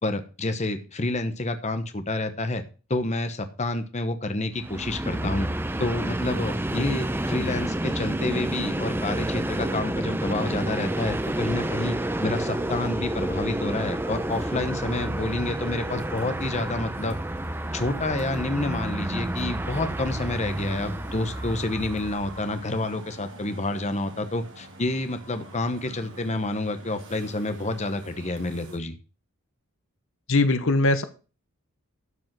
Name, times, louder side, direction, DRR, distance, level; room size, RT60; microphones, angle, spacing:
voice 1, 0.0-2.6 2.9-5.5 5.8-12.0 12.2-17.2 17.7-29.0, left 2 dB, 30° left, 9 dB, 1.0 m, -29 dB
Train, 4.5-22.7, right 1 dB, 10° right, 0.6 m, -30 dB
sound 1, 10.9-28.8, right 2 dB, 55° right, 2.6 m, -46 dB
voice 2, 30.3-31.0, left 2 dB, 60° left, 11 dB, 1.0 m, -20 dB
12.5 x 5.2 x 6.0 m, 0.34 s
head